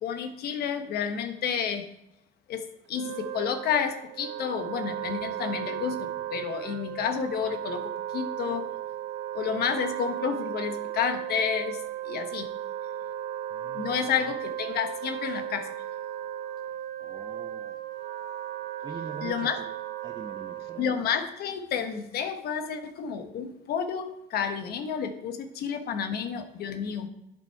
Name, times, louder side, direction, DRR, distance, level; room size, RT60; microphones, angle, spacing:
voice 1, 0.0-1.9 2.5-2.6 2.9-8.7 9.3-11.8 12.0-12.5 13.7-15.7 19.2-19.6 20.8-27.1, left 7 dB, 70° left, 7 dB, 1.1 m, -30 dB
Wind instrument woodwind instrument, 2.9-21.0, right 11 dB, 75° right, 1.1 m, -36 dB
voice 2, 13.5-14.1 17.0-17.8 18.8-19.7 20.0-20.9 26.1-26.2, right 5 dB, 25° right, 5 dB, 0.7 m, -44 dB
8.5 x 7.6 x 4.6 m, 0.85 s
cardioid pair, 110°, 17 cm